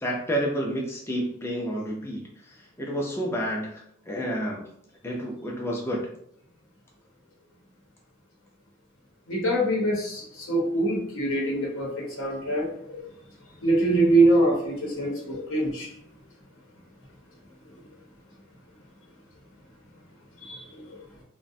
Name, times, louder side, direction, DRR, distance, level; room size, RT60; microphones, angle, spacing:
voice 1, 0.0-2.3 2.8-4.6 5.0-6.1, equal, 10° left, -1 dB, 0.3 m, -29 dB
voice 2, 9.3-13.0 13.6-15.9 20.4-20.6, right 2 dB, 80° left, -3 dB, 0.7 m, -24 dB
2.4 x 2.1 x 2.6 m, 0.69 s
head